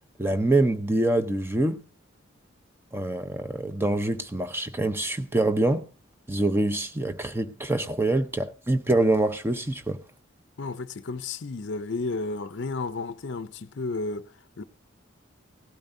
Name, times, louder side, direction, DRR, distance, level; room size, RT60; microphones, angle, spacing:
voice 1, 0.2-1.8 2.9-5.9 6.3-10.0, right 2 dB, 10° right, 0.7 m, -25 dB
voice 2, 10.6-14.6, left 3 dB, 55° left, 0.5 m, -32 dB
17.5 x 12.5 x 2.6 m
head